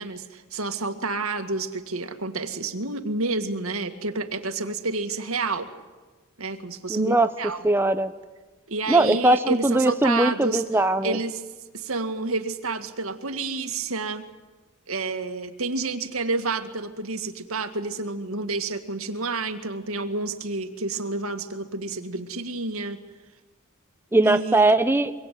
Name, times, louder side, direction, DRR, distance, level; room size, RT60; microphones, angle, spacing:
voice 1, 0.0-5.7 6.4-7.7 8.7-10.6 11.0-11.4 11.7-14.2 14.9-23.0 24.2-24.7, right 3 dB, 75° right, 8 dB, 2.1 m, -29 dB
voice 2, 6.9-7.3 7.6-8.1 8.9-11.2 24.1-25.1, right 2 dB, 10° right, 9 dB, 0.8 m, -20 dB
24.0 x 24.0 x 9.4 m, 1.3 s
head